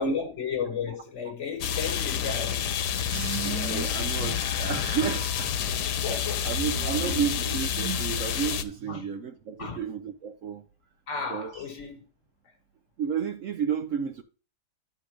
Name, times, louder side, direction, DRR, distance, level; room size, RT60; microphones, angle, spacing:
voice 1, 0.0-2.7 6.0-6.5 7.0-7.3 8.9-9.1 9.6-9.8 11.1-12.0, left 6 dB, 50° left, 1.4 m, -33 dB
sound 1, 1.6-8.6, left 9 dB, 85° left, 1.3 m, -29 dB
sound 2, 3.1-5.1 5.6-8.2 8.5-9.1, right 4 dB, 90° right, 1.6 m, -37 dB
voice 2, 3.4-5.5 6.1-6.2 6.4-10.7 11.3-11.7 13.0-14.2, right 7 dB, 65° right, 0.8 m, -31 dB
10.0 x 4.3 x 4.9 m
omnidirectional pair, 1.7 m